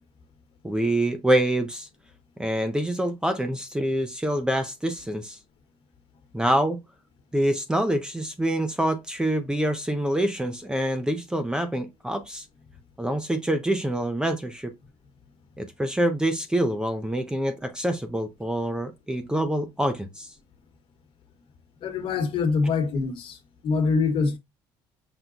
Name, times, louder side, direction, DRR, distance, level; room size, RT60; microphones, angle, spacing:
voice 1, 0.6-1.9 2.4-5.4 6.3-6.8 7.3-12.4 13.0-14.7 15.6-20.3, right 1 dB, 5° right, 0.5 m, -26 dB
voice 2, 21.8-23.4 23.6-24.4, left 4 dB, 55° left, 1.3 m, -24 dB
5.9 x 2.2 x 3.9 m
cardioid pair, 120°, 11 cm